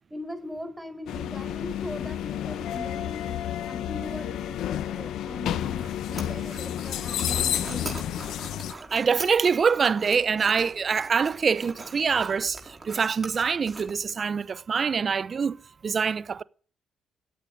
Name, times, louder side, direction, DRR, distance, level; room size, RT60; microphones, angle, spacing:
voice 1, 0.1-3.4 3.7-8.0, equal, 10° right, 4.5 m, -40 dB
sound 1, 1.1-8.7, left 11 dB, 75° left, 0.9 m, -30 dB
sound 2, 5.8-14.1, right 3 dB, 30° right, 4.6 m, -42 dB
voice 2, 8.9-15.6 15.8-16.4, right 6 dB, 45° right, 0.7 m, -25 dB
13.5 x 8.5 x 9.2 m
supercardioid pair, 60°, 0 cm